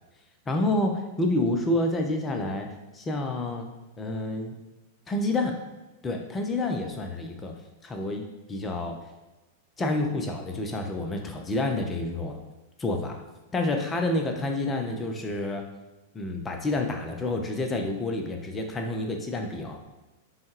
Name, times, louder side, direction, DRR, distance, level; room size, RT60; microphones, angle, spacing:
voice 1, 0.5-2.7 2.9-3.7 4.0-4.6 5.1-5.5 6.0-7.5 7.8-8.2 8.5-8.9 9.8-12.4 12.8-13.2 13.5-15.6 16.1-19.8, left 2 dB, 20° left, 3 dB, 0.5 m, -28 dB
5.3 x 2.2 x 3.2 m, 1.1 s
figure-of-eight pair, 95°, 0 cm